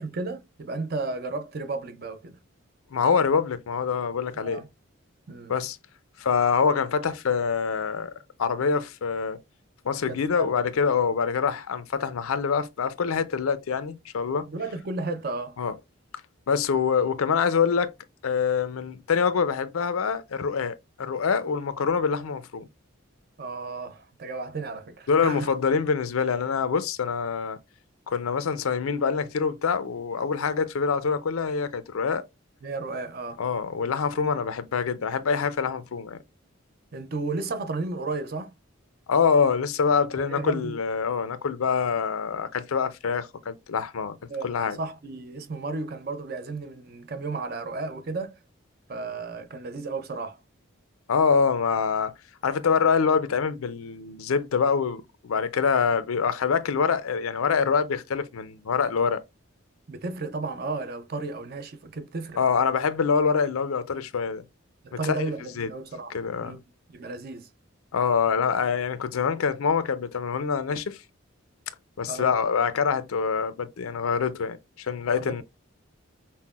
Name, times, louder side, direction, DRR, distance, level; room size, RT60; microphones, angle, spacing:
voice 1, 0.0-2.4 4.4-4.7 5.3-5.5 10.1-10.5 14.5-15.6 23.4-25.5 32.6-33.4 36.9-38.5 40.1-40.8 44.3-48.4 48.9-50.4 59.9-62.4 64.8-66.6 66.9-67.5 72.1-72.3 75.2-75.4, right 3 dB, 45° right, 0.5 m, -33 dB
voice 2, 2.9-4.6 5.5-5.8 6.2-8.1 8.4-9.4 9.8-14.5 15.6-15.7 16.5-17.9 18.2-22.7 25.1-27.6 28.1-32.2 33.4-36.2 39.1-44.2 44.4-44.8 51.1-52.1 52.4-59.2 62.4-64.4 65.1-65.3 65.6-65.7 66.1-66.6 67.9-71.0 72.0-75.4, left 6 dB, 85° left, 0.5 m, -25 dB
5.6 x 2.1 x 2.3 m
head